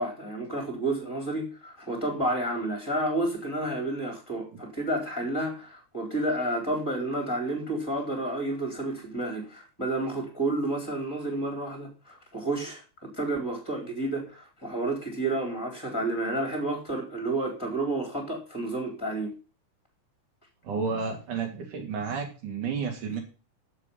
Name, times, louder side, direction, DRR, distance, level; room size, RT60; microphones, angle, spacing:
voice 1, 0.0-19.3, right 2 dB, 5° left, 4.0 m, -30 dB
voice 2, 20.6-23.2, right 5 dB, 80° right, 4.5 m, -31 dB
13.0 x 7.4 x 5.7 m
omnidirectional pair, 3.5 m